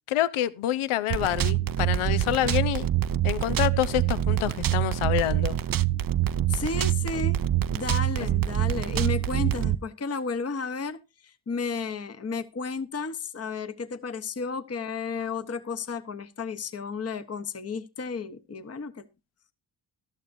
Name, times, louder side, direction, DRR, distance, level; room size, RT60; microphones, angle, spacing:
voice 1, 0.1-2.9 3.2-5.6, left 13 dB, 80° left, 0.8 m, -27 dB
sound 1, 1.1-9.8, right 12 dB, 45° right, 0.6 m, -25 dB
voice 2, 6.5-7.4 7.7-11.0 11.2-19.0, left 4 dB, 30° left, 1.0 m, -33 dB
15.0 x 12.0 x 2.6 m
supercardioid pair, 55°, 50 cm